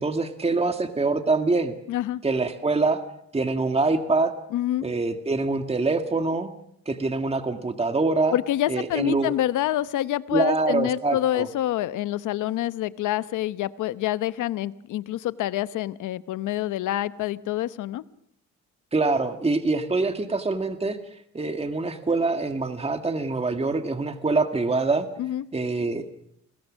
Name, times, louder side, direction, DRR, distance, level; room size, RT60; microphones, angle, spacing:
voice 1, 0.0-1.7 2.2-3.0 3.3-4.3 4.8-6.5 6.9-8.4 8.7-9.3 10.3-11.5 18.9-21.0 21.3-25.1 25.5-26.1, right 3 dB, 20° right, 7 dB, 1.9 m, -24 dB
voice 2, 1.9-2.2 4.5-4.9 8.3-18.0 25.2-25.4, left 13 dB, 85° left, 15 dB, 1.0 m, -27 dB
30.0 x 22.0 x 6.4 m, 0.73 s
cardioid pair, 90°, 30 cm